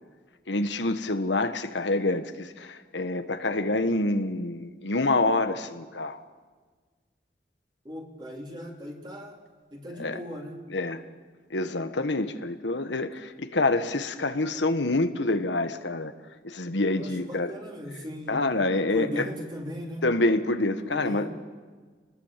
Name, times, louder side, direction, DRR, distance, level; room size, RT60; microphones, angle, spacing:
voice 1, 0.5-6.2 10.0-10.2 10.7-11.0 11.5-16.1 16.4-17.5 18.3-19.3 20.0-21.3, left 2 dB, 85° left, 9 dB, 1.4 m, -27 dB
voice 2, 7.8-9.4 9.7-10.6 16.9-20.0 20.8-21.3, equal, 25° right, 0 dB, 3.4 m, -38 dB
27.5 x 20.0 x 7.5 m, 1.4 s
head